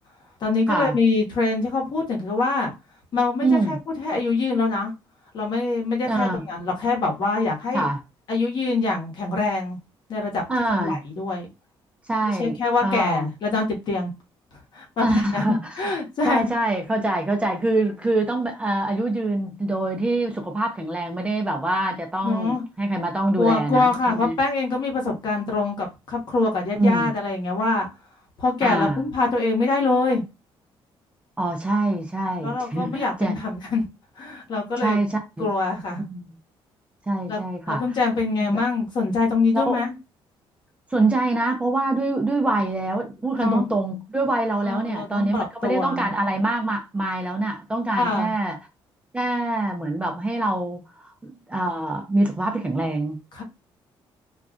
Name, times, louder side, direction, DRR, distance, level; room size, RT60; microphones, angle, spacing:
voice 1, 0.4-2.7 3.1-4.9 5.3-7.9 8.3-9.8 10.1-10.4 10.8-11.5 12.4-14.1 14.7-16.4 22.2-22.6 23.4-27.9 28.4-30.2 32.4-33.8 34.2-35.0 35.4-36.0 37.3-37.4 37.7-39.9 43.3-43.7 44.7-46.1 47.9-48.3 53.3-53.4, left 3 dB, 50° left, 1.0 m, -24 dB
voice 2, 3.4-3.8 6.1-6.4 7.7-8.0 10.5-11.0 12.1-13.3 15.0-15.9 16.2-24.4 26.7-27.1 28.6-29.0 31.4-33.4 34.8-35.5 36.0-36.3 37.1-37.8 38.5-38.6 39.5-39.9 40.9-48.6 49.1-53.2, right 2 dB, 10° right, 0.5 m, -25 dB
2.4 x 2.3 x 3.6 m
cardioid pair, 145°, 10 cm